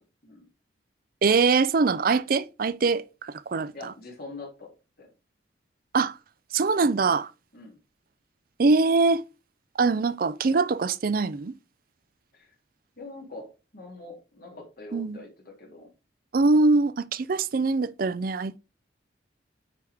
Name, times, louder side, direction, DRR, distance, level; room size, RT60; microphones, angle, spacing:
voice 1, 1.2-3.9 5.9-6.2 6.5-7.3 8.6-9.2 9.8-11.5 14.9-15.2 16.3-18.6, right 4 dB, 50° right, 0.5 m, -23 dB
voice 2, 3.7-4.7 5.0-5.1 7.5-7.8 12.3-12.5 13.0-15.9, left 2 dB, 55° left, 3.1 m, -43 dB
9.2 x 4.9 x 3.6 m
head